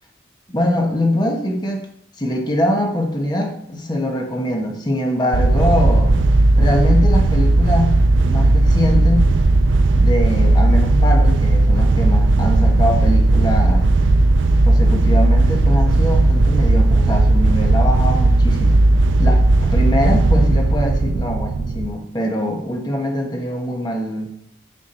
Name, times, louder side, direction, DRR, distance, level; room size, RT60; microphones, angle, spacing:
voice 1, 0.5-1.8 2.2-6.1 6.6-9.3 10.0-13.9 14.7-18.8 19.2-24.3, left 1 dB, 25° left, 1 dB, 1.3 m, -23 dB
sound 1, 5.3-21.9, right 2 dB, 85° right, 0.5 m, -15 dB
9.1 x 4.9 x 4.4 m, 0.69 s
head